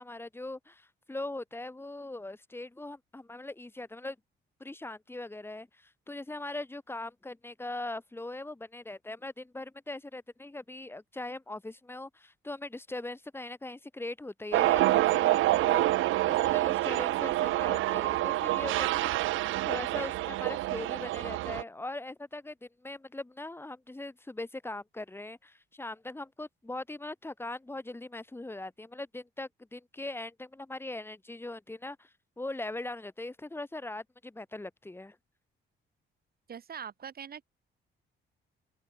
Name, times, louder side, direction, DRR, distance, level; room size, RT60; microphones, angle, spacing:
voice 1, 0.0-4.2 4.6-19.1 19.6-32.1 32.4-35.2, left 2 dB, 10° left, 2.0 m, -40 dB
sound 1, 14.5-21.6, right 16 dB, 80° right, 0.6 m, -27 dB
voice 2, 36.5-37.4, right 7 dB, 50° right, 2.4 m, -42 dB
open air
cardioid pair, 90°, 20 cm